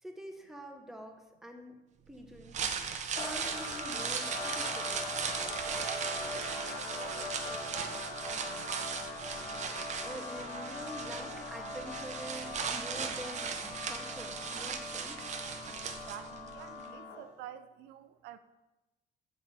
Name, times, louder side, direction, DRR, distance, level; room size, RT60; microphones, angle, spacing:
voice 1, 0.0-1.8 2.1-2.6 3.1-5.1 10.0-15.2, right 1 dB, ahead, 1.0 m, -46 dB
sound 1, 2.3-16.5 16.8-16.9, right 6 dB, 45° right, 0.7 m, -38 dB
sound 2, 3.2-17.4, left 2 dB, 80° left, 1.7 m, -41 dB
voice 2, 5.8-8.9 15.8-18.4, right 11 dB, 85° right, 0.4 m, -49 dB
6.5 x 4.3 x 5.3 m
cardioid pair, 110°, 17 cm